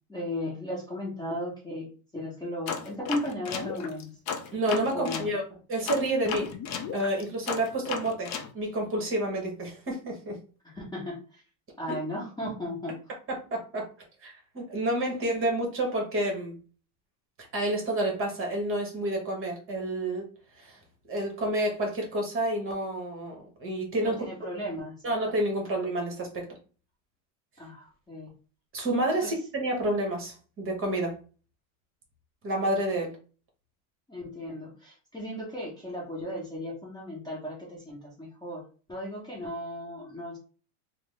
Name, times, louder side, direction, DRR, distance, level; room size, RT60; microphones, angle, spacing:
voice 1, 0.1-4.1 4.9-5.3 10.6-11.4 11.8-13.0 24.0-24.9 27.6-28.3 29.2-29.3 34.1-38.6 38.9-40.4, left 1 dB, 10° left, -4 dB, 1.0 m, -36 dB
sound 1, 2.7-5.3 5.9-8.5, left 6 dB, 40° left, 0.5 m, -34 dB
voice 2, 4.5-5.4 5.7-6.5 6.9-10.4 13.3-13.9 14.2-16.6 17.5-20.3 20.5-20.8 21.1-24.3 25.0-26.5 28.7-31.2 32.4-33.1, right 1 dB, 30° right, 1 dB, 1.1 m, -29 dB
3.3 x 2.1 x 3.2 m, 0.37 s
supercardioid pair, 130°, 44 cm